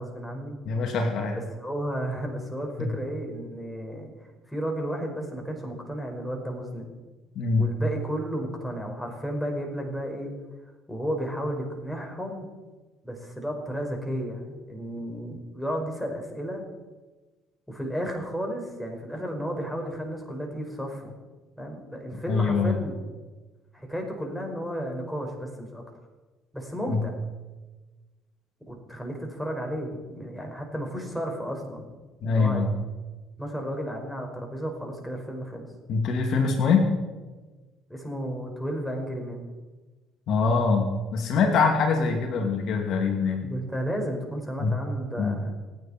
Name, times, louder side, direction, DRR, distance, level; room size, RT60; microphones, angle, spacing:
voice 1, 0.0-0.6 1.6-4.1 4.5-6.9 7.6-10.3 10.9-12.5 13.0-16.6 17.7-21.1 21.6-22.9 23.7-25.8 26.5-27.1 28.7-31.8 32.2-32.6 33.4-35.7 37.9-39.5 43.4-45.5, equal, 5° left, 1 dB, 5.3 m, -33 dB
voice 2, 0.6-1.4 2.8-2.9 7.3-7.7 22.3-22.7 26.9-27.1 32.2-32.7 35.9-36.9 40.3-43.5 44.6-44.8 45.2-45.4, left 4 dB, 65° left, 2 dB, 2.5 m, -24 dB
28.0 x 9.6 x 4.4 m, 1.2 s
supercardioid pair, 75°, 0 cm